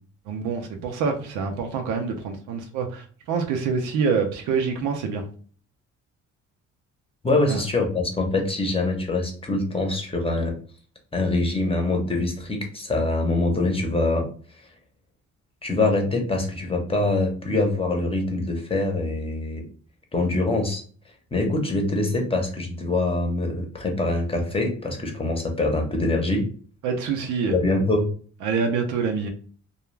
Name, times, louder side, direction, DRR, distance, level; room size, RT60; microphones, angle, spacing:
voice 1, 0.3-5.2 7.5-7.6 26.8-27.5 28.4-29.3, right 5 dB, 90° right, 0.6 m, -26 dB
voice 2, 7.2-10.5 11.1-14.3 15.6-19.7 20.1-20.8 21.3-26.5 27.5-28.1, left 2 dB, 20° left, 0.8 m, -24 dB
2.3 x 2.3 x 3.1 m
cardioid pair, 90°, 30 cm